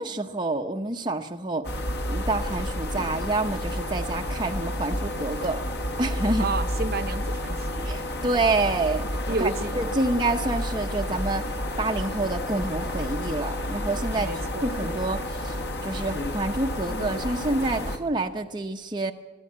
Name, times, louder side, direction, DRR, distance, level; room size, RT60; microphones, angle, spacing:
voice 1, 0.0-1.7 2.1-5.6 6.0-6.5 7.8-9.0 9.4-14.3 14.6-19.1, right 2 dB, 25° right, 3 dB, 0.8 m, -28 dB
sound 1, 1.6-18.0, left 1 dB, 60° left, 1.6 m, -30 dB
voice 2, 6.4-7.8 9.3-9.7 14.1-14.7, right 3 dB, 55° right, 10 dB, 0.9 m, -30 dB
22.5 x 13.5 x 8.7 m, 1.2 s
head